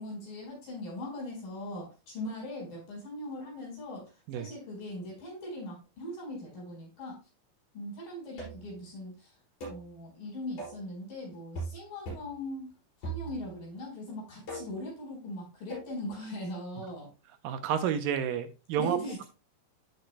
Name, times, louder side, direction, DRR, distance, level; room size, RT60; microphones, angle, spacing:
voice 1, 0.0-7.2 7.7-9.3 9.7-12.7 13.0-17.1 18.8-19.2, left 1 dB, 70° left, 6.5 m, -40 dB
sound 1, 8.4-8.7 9.6-9.9 10.6-10.9 11.5-11.8 12.1-12.4 13.0-13.6 14.5-14.9 15.7-15.9, right 3 dB, 50° left, 5.6 m, -40 dB
voice 2, 17.4-19.2, right 9 dB, 80° right, 2.3 m, -30 dB
14.5 x 4.9 x 2.3 m
omnidirectional pair, 4.1 m